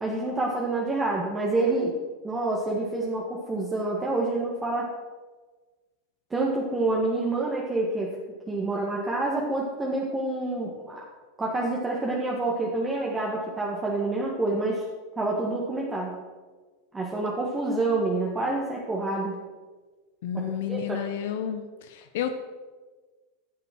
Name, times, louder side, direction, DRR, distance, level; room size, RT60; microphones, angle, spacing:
voice 1, 0.0-2.0 2.2-4.9 6.3-8.2 8.5-11.0 11.4-14.8 15.2-16.2 16.9-19.4 20.3-21.0, right 2 dB, 20° right, -3 dB, 1.8 m, -27 dB
voice 2, 20.2-22.3, left 10 dB, 70° left, 8 dB, 0.9 m, -31 dB
11.0 x 7.0 x 6.2 m, 1.3 s
hypercardioid pair, 100°, 0 cm